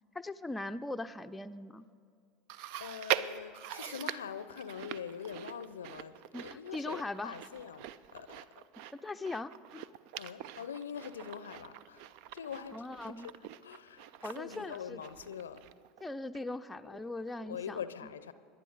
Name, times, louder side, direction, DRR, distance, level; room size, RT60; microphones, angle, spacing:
voice 1, 0.1-1.8 6.3-7.3 8.9-9.8 12.7-13.3 14.2-15.0 16.0-18.1, left 2 dB, 10° left, 0.5 m, -40 dB
Chewing mastication, 2.5-16.0 16.3-16.4 17.3-17.4, right 12 dB, 55° right, 0.4 m, -42 dB
voice 2, 2.8-6.2 6.4-8.7 10.2-12.0 12.3-13.4 13.6-15.7 16.9-17.0 17.4-18.3, left 7 dB, 75° left, 0.5 m, -43 dB
27.0 x 11.0 x 4.0 m
figure-of-eight pair, 75°, 0 cm